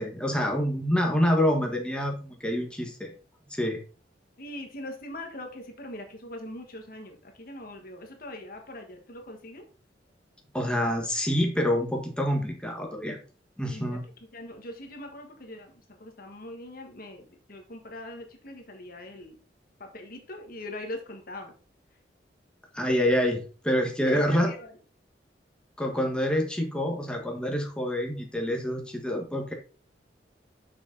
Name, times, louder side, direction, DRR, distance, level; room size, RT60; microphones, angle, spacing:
voice 1, 0.0-3.1 3.6-3.8 10.5-13.2 13.6-14.0 22.7-24.5 25.8-29.5, equal, 5° left, 1 dB, 1.4 m, -27 dB
voice 2, 4.4-9.6 13.7-14.0 14.3-19.4 19.8-21.5 24.0-24.7, left 1 dB, 55° left, 4 dB, 1.5 m, -41 dB
6.6 x 6.1 x 4.0 m, 0.36 s
head